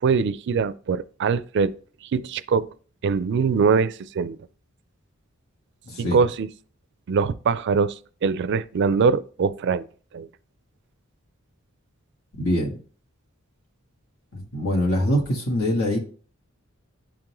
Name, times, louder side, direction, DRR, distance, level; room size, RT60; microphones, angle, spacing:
voice 1, 0.0-1.8 2.1-2.7 3.0-4.4 6.0-6.5 7.1-7.9 8.2-9.9 10.1-10.3, right 5 dB, 55° right, 0.4 m, -22 dB
voice 2, 5.8-6.2 12.3-12.8 14.3-16.0, equal, 80° left, 1.5 m, -24 dB
10.5 x 3.7 x 3.0 m
head